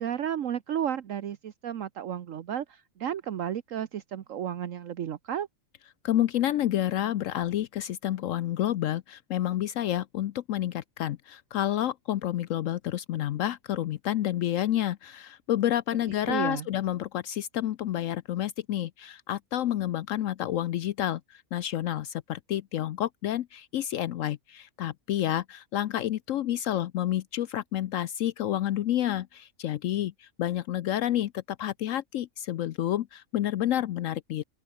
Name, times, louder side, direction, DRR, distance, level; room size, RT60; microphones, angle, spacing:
voice 1, 0.0-5.5 16.3-16.7, right 9 dB, 70° right, 1.3 m, -33 dB
voice 2, 6.0-34.4, left 12 dB, 75° left, 1.0 m, -29 dB
open air
omnidirectional pair, 1.4 m